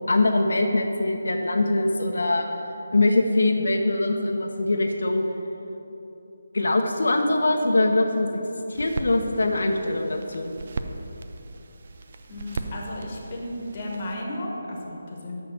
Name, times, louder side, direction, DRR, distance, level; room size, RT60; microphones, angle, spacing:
voice 1, 0.1-2.5 2.9-5.3 6.5-8.4 8.7-10.5, left 2 dB, 80° left, 3 dB, 0.8 m, -22 dB
sound 1, 8.7-14.1, right 3 dB, 40° right, 0.4 m, -37 dB
voice 2, 12.3-15.4, left 1 dB, 25° left, -2 dB, 1.2 m, -34 dB
6.4 x 6.2 x 6.9 m, 3.0 s
hypercardioid pair, 175°, 0 cm